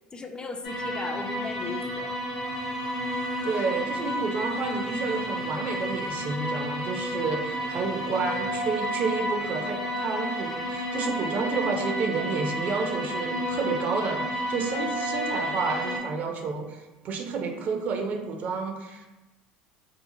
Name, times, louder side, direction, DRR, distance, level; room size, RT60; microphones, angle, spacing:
voice 1, 0.1-2.1 7.5-7.7, left 3 dB, 25° left, 4 dB, 0.3 m, -37 dB
sound 1, 0.6-16.0, equal, 85° left, 0.8 m, -31 dB
voice 2, 3.4-19.1, right 4 dB, 50° right, 3 dB, 0.5 m, -30 dB
2.7 x 2.3 x 2.6 m, 1.1 s
hypercardioid pair, 75°, 3 cm